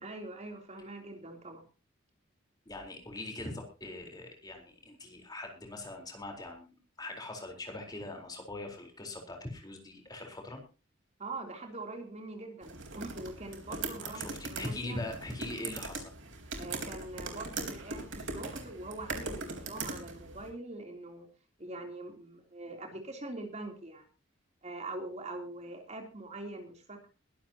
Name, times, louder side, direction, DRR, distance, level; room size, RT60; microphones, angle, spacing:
voice 1, 0.0-1.7 11.2-15.0 16.6-21.3 21.6-24.0 24.6-27.1, right 2 dB, 35° right, 3 dB, 3.3 m, -43 dB
voice 2, 2.7-10.6 13.7-16.0, left 2 dB, 20° left, 2 dB, 4.2 m, -42 dB
sound 1, 12.6-20.5, right 3 dB, 70° right, 4.0 m, -40 dB
22.0 x 12.0 x 2.9 m, 0.31 s
head